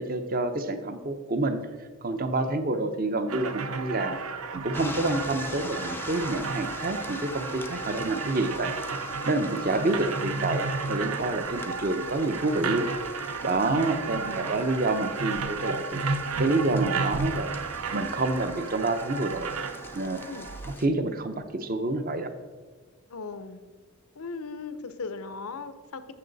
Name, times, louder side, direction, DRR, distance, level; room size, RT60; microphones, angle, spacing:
voice 1, 0.0-1.6 2.0-4.2 4.5-8.7 9.2-12.9 13.4-17.5 17.9-19.5 19.9-20.2 20.7-22.3, right 2 dB, 40° right, 8 dB, 0.8 m, -28 dB
sound 1, 3.3-20.7, right 4 dB, 80° right, 0.7 m, -33 dB
sound 2, 4.7-20.9, left 2 dB, 10° left, 0.5 m, -43 dB
voice 2, 13.8-14.6 20.3-20.5 23.1-23.6 24.2-26.1, left 4 dB, 80° left, 11 dB, 0.7 m, -38 dB
14.0 x 7.0 x 4.0 m, 1.4 s
head